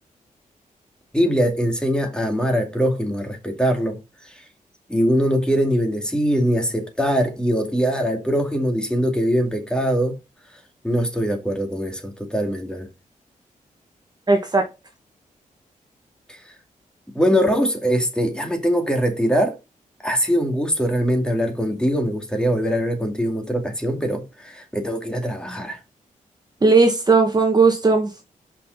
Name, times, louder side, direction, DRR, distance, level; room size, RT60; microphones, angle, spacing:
voice 1, 1.1-4.0 4.9-10.2 10.8-12.9 16.3-16.4 17.1-19.6 20.0-25.8, equal, 5° left, 2.3 m, -22 dB
voice 2, 14.3-14.7 26.6-28.2, right 3 dB, 30° right, 1.4 m, -17 dB
5.8 x 5.3 x 5.1 m
wide cardioid pair, 100°, 14 cm